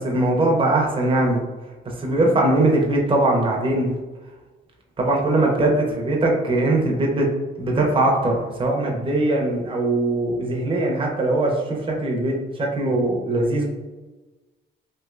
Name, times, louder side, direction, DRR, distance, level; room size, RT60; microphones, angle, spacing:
voice 1, 0.0-1.4 2.0-3.9 5.0-7.3 7.6-13.7, right 2 dB, 25° right, -1 dB, 0.6 m, -21 dB
3.2 x 2.6 x 2.4 m, 1.2 s
cardioid pair, 90°, 20 cm